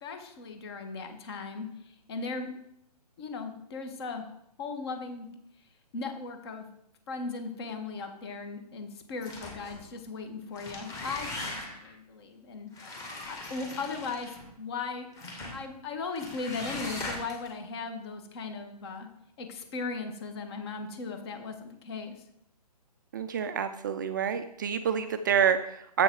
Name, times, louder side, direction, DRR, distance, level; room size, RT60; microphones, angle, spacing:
voice 1, 0.0-2.5 3.2-4.3 4.6-5.3 5.9-6.7 7.1-14.3 14.6-15.1 15.5-19.1 19.4-22.3, left 4 dB, 40° left, 6 dB, 1.4 m, -37 dB
sound 1, 9.2-9.8 10.4-11.9 12.7-14.5 15.2-15.6 16.2-17.5, left 2 dB, 15° left, 1.7 m, -40 dB
voice 2, 23.1-26.0, right 8 dB, 30° right, 9 dB, 0.4 m, -27 dB
7.5 x 6.2 x 4.6 m, 0.74 s
figure-of-eight pair, 135°, 21 cm